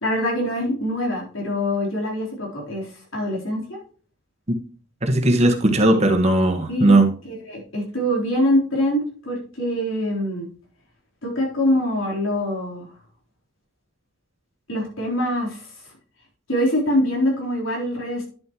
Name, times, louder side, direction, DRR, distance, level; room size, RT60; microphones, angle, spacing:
voice 1, 0.0-3.8 6.7-7.0 7.3-10.5 11.2-12.9 14.7-15.7 16.5-18.3, left 1 dB, 85° left, -2 dB, 3.8 m, -24 dB
voice 2, 5.0-7.1, right 1 dB, 30° right, 4 dB, 1.4 m, -17 dB
10.5 x 7.3 x 3.0 m, 0.43 s
head